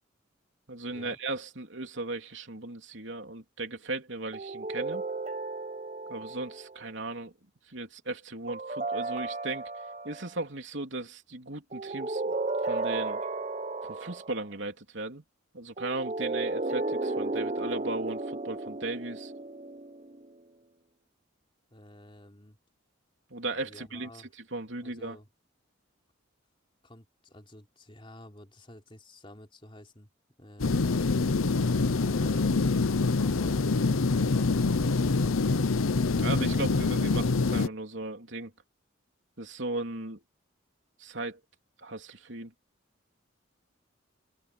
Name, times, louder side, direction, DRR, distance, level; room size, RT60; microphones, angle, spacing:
voice 1, 0.7-5.0 6.1-7.3 7.7-9.7 10.0-12.3 12.6-13.2 13.8-15.2 15.5-19.3 23.3-25.2 36.2-38.5 39.4-40.2 41.0-41.4 41.8-42.5, right 2 dB, 65° right, 3.5 m, -36 dB
sound 1, 4.3-6.8 8.5-10.3 11.7-14.4 15.8-20.3, right 3 dB, 35° right, 1.0 m, -34 dB
voice 2, 21.7-22.6 23.6-24.3 24.8-25.3 26.8-30.1 30.4-31.0 32.0-35.9, left 1 dB, 25° left, 3.6 m, -49 dB
sound 2, 30.6-37.7, left 3 dB, 90° left, 0.8 m, -25 dB
head